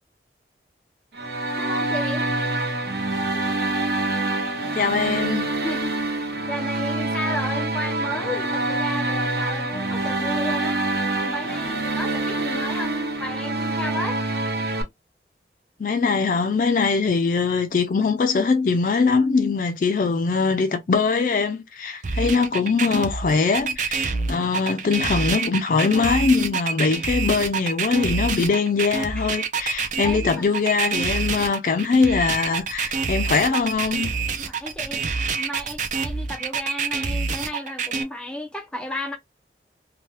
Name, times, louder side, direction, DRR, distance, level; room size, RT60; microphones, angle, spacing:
sound 1, 1.1-14.8, right 2 dB, 65° right, 0.8 m, -26 dB
voice 1, 1.5-2.3 5.6-10.8 11.2-14.2 29.2-29.3 30.0-30.4 34.4-39.2, left 1 dB, 5° left, 0.6 m, -33 dB
voice 2, 4.7-5.5 15.8-34.1, left 4 dB, 50° left, 0.4 m, -22 dB
sound 2, 22.0-38.0, right 5 dB, 45° right, 0.4 m, -27 dB
2.8 x 2.2 x 3.0 m
head